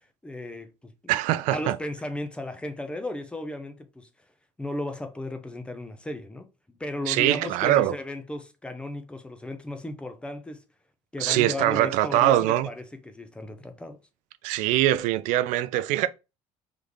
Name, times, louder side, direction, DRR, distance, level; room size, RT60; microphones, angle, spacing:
voice 1, 0.2-0.9 1.5-4.1 4.6-6.5 6.8-10.6 11.1-14.0, left 1 dB, 10° left, 0.6 m, -35 dB
voice 2, 1.1-1.8 7.1-7.9 11.2-12.7 14.4-16.1, right 14 dB, 80° right, 0.4 m, -23 dB
4.0 x 3.1 x 3.4 m
cardioid pair, 155°, 12 cm